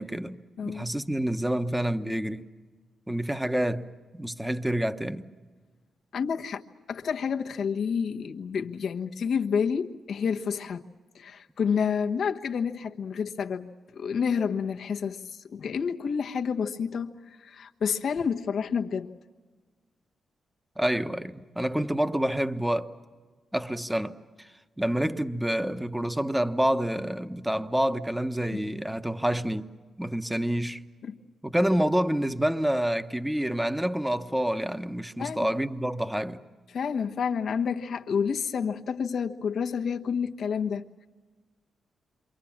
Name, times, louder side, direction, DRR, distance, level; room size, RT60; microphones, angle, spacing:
voice 1, 0.0-2.5 3.1-5.2 20.8-22.9 23.5-24.5 24.8-29.7 30.0-30.8 31.4-36.4, right 1 dB, 5° right, 1.2 m, -28 dB
voice 2, 0.6-0.9 6.1-6.6 6.9-10.8 11.1-19.1 28.5-28.6 31.0-31.2 35.2-35.5 36.7-41.1, left 6 dB, 70° left, 1.2 m, -29 dB
28.0 x 25.0 x 7.3 m
cardioid pair, 70°, 0 cm